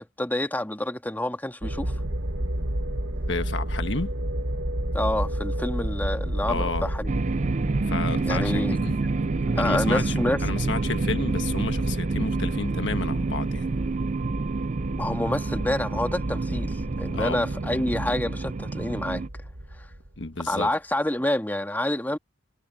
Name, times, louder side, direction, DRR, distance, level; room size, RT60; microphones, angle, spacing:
voice 1, 0.0-1.9 4.9-7.1 8.3-8.7 9.5-10.4 15.0-19.2 20.5-22.2, left 1 dB, 10° left, 1.6 m, -28 dB
sound 1, 1.6-20.5, right 1 dB, 90° right, 1.9 m, -31 dB
voice 2, 3.3-4.1 6.4-6.9 7.8-9.0 9.5-13.7 17.1-17.5 20.2-20.7, left 3 dB, 70° left, 1.5 m, -31 dB
sound 2, 7.1-19.3, right 3 dB, 40° right, 0.4 m, -29 dB
head